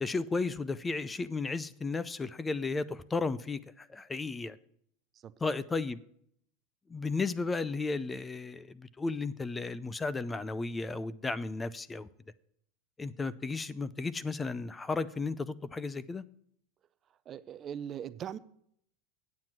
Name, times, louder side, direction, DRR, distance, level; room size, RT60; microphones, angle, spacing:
voice 1, 0.0-4.6 5.4-6.0 6.9-12.1 13.0-16.2, left 3 dB, 15° left, 0.5 m, -34 dB
voice 2, 17.3-18.4, right 9 dB, 35° right, 0.5 m, -40 dB
9.5 x 7.4 x 6.0 m
hypercardioid pair, 105°, 0 cm